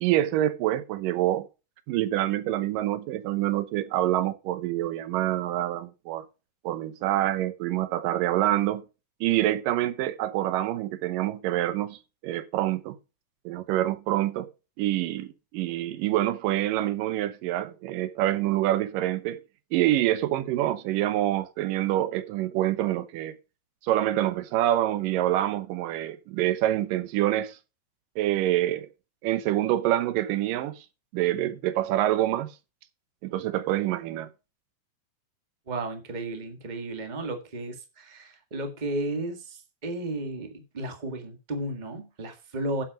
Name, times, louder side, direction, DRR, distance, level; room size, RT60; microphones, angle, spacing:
voice 1, 0.0-1.5 1.9-6.3 6.6-8.8 9.2-13.0 13.5-14.5 14.8-19.4 19.7-23.4 23.8-27.6 28.2-28.9 29.2-30.8 31.1-32.5 33.2-34.3, right 14 dB, 75° right, 2.5 m, -26 dB
voice 2, 35.7-42.8, right 2 dB, 35° right, 0.7 m, -34 dB
8.6 x 7.7 x 5.1 m
omnidirectional pair, 4.0 m